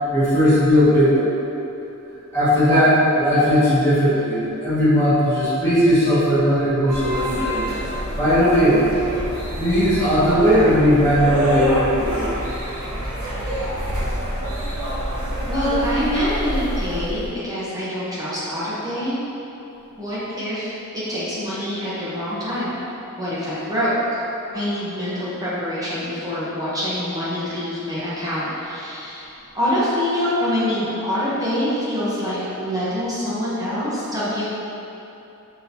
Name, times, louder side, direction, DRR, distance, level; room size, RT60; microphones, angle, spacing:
voice 1, 0.1-1.3 2.3-7.6 7.9-8.8 9.6-12.3, equal, 15° left, -12 dB, 1.3 m, -17 dB
sound 1, 6.9-17.3, equal, 80° right, 0.9 m, -26 dB
voice 2, 15.5-19.2 20.0-22.8 23.2-24.2 24.5-34.5, equal, 15° right, -10 dB, 0.9 m, -25 dB
5.8 x 2.9 x 2.7 m, 2.9 s
head